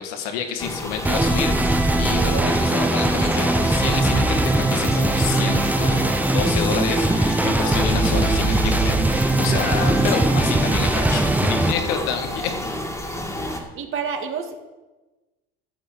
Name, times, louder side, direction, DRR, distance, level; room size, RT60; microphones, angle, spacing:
voice 1, 0.0-12.5, left 8 dB, 80° left, 6 dB, 2.1 m, -29 dB
sound 1, 0.6-13.6, left 1 dB, 10° left, 2.3 m, -30 dB
sound 2, 1.1-11.7, right 2 dB, 5° right, 0.8 m, -20 dB
voice 2, 2.1-2.6 13.8-14.6, right 7 dB, 45° right, 5 dB, 2.0 m, -29 dB
13.0 x 7.6 x 7.7 m, 1.1 s
supercardioid pair, 120°, 29 cm